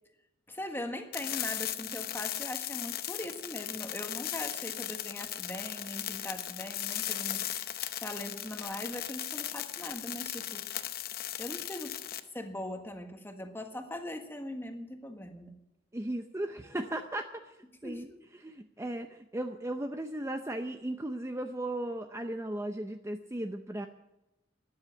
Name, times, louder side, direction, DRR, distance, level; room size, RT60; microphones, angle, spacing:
voice 1, 0.5-7.5 8.0-10.7 11.4-12.0 12.3-15.6 17.8-18.2, left 1 dB, 10° left, 5 dB, 1.5 m, -40 dB
sound 1, 1.1-12.2, left 12 dB, 55° left, 0.8 m, -37 dB
voice 2, 15.9-17.5 17.8-18.1 18.4-23.9, right 1 dB, 15° right, 6 dB, 0.6 m, -36 dB
13.0 x 10.5 x 8.7 m, 0.95 s
head